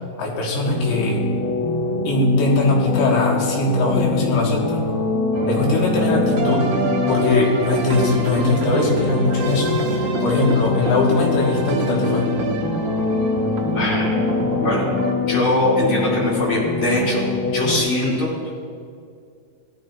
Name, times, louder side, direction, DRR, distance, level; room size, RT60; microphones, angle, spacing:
voice 1, 0.2-1.3 2.1-4.9 5.5-6.7 7.1-12.3, left 2 dB, 85° left, -2 dB, 3.7 m, -20 dB
sound 1, 0.6-17.8, left 4 dB, 55° left, 2.5 m, -24 dB
sound 2, 5.3-15.1, right 5 dB, 85° right, 1.6 m, -28 dB
voice 2, 13.7-14.2 14.6-14.8 15.2-18.5, left 1 dB, 35° left, -6 dB, 3.2 m, -22 dB
17.0 x 12.0 x 2.6 m, 2.3 s
omnidirectional pair, 4.7 m